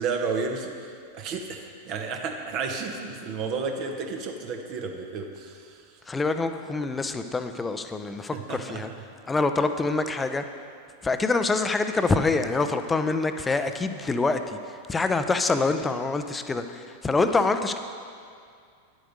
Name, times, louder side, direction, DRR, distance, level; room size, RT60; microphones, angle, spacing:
voice 1, 0.0-5.8 8.3-8.8, right 4 dB, 40° right, 4 dB, 0.9 m, -32 dB
voice 2, 6.1-8.9 9.3-10.5 11.0-17.8, left 3 dB, 15° left, 8 dB, 0.6 m, -26 dB
10.0 x 7.8 x 5.2 m, 2.3 s
figure-of-eight pair, 90°, 0 cm